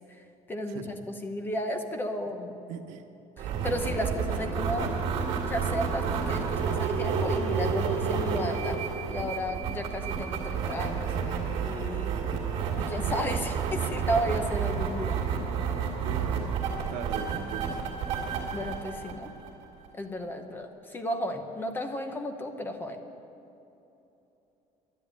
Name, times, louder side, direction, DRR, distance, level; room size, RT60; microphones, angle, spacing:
voice 1, 0.1-2.5 3.4-4.9 5.5-8.8 9.1-11.1 11.6-12.1 12.8-15.2 18.5-19.3 19.9-23.0, equal, 15° left, 6 dB, 0.8 m, -33 dB
voice 2, 2.7-3.0 16.0-17.8, right 7 dB, 80° right, 6 dB, 1.1 m, -39 dB
sound 1, 3.4-19.9, right 6 dB, 50° right, 2.4 m, -30 dB
11.5 x 10.5 x 8.5 m, 2.9 s
cardioid pair, 175°, 13 cm